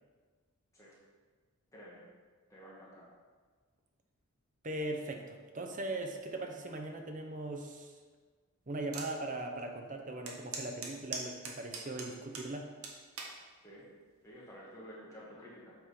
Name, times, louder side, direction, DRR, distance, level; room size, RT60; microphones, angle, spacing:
voice 1, 1.7-2.0 2.5-3.1 13.6-13.9 14.2-15.7, equal, 15° left, -6 dB, 1.3 m, -51 dB
voice 2, 4.6-7.9 8.7-12.7, right 2 dB, 35° right, 4 dB, 0.7 m, -39 dB
sound 1, 8.9-9.1 9.6-9.7 10.3-12.5 12.8-13.4 14.1-14.4, right 4 dB, 65° right, 1.0 m, -41 dB
7.3 x 3.7 x 4.8 m, 1.5 s
head